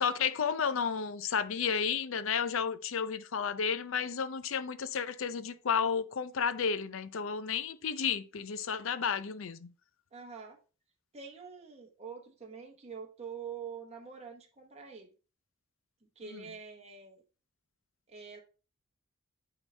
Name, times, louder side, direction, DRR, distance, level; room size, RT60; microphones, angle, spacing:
voice 1, 0.0-9.7 16.3-16.4, left 6 dB, 70° left, 0.5 m, -32 dB
voice 2, 10.1-10.6 11.1-15.1 16.0-17.2 18.1-18.4, right 6 dB, 30° right, 1.0 m, -45 dB
9.0 x 3.9 x 3.3 m
head